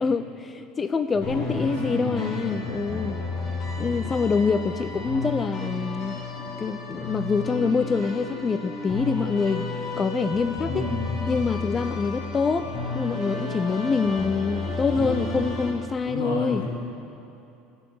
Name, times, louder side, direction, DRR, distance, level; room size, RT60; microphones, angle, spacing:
voice 1, 0.0-3.2 3.8-6.2 6.6-9.7 10.0-10.9 11.3-12.7 12.9-16.6, left 5 dB, 30° left, 10 dB, 0.5 m, -25 dB
voice 2, 1.1-2.7 10.6-11.2 14.9-15.4 16.0-16.7, left 1 dB, 85° left, -3 dB, 3.1 m, -31 dB
sound 1, 1.2-15.7, left 3 dB, 50° left, 3.0 m, -32 dB
13.0 x 7.2 x 8.4 m, 2.8 s
hypercardioid pair, 80°, 0 cm